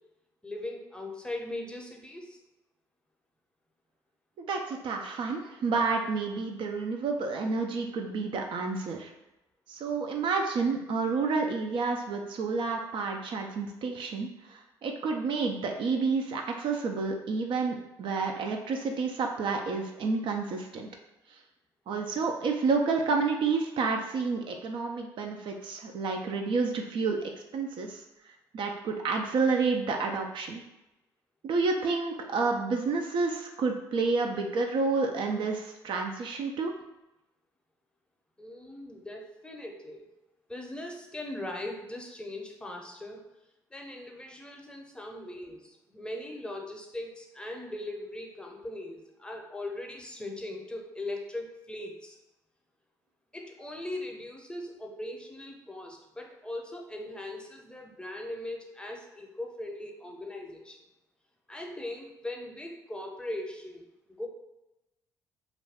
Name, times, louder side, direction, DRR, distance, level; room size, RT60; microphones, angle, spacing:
voice 1, 0.4-2.4 38.4-40.1 40.5-43.3 43.7-52.2 53.3-60.8 61.5-64.3, left 1 dB, 10° left, 0 dB, 0.6 m, -40 dB
voice 2, 4.4-9.1 9.7-20.9 21.9-28.0 28.5-30.6 31.4-36.7, right 4 dB, 60° right, 2 dB, 0.4 m, -29 dB
2.4 x 2.2 x 3.4 m, 0.96 s
hypercardioid pair, 60°, 10 cm